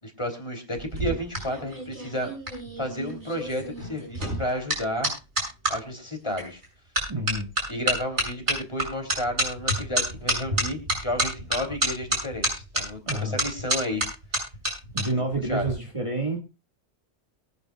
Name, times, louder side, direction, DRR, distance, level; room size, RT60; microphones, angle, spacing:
voice 1, 0.0-2.3 2.8-5.1 5.7-6.6 7.7-14.0 15.5-15.6, equal, 25° left, 4 dB, 3.4 m, -31 dB
sound 1, 0.7-5.7 6.4-6.7 7.0-15.0 15.3-15.7, right 1 dB, 70° right, 8.2 m, -28 dB
voice 2, 7.1-7.5 13.1-13.4 14.9-16.4, right 2 dB, 25° right, 1 dB, 2.0 m, -28 dB
23.5 x 9.5 x 2.4 m, 0.29 s
omnidirectional pair, 1.2 m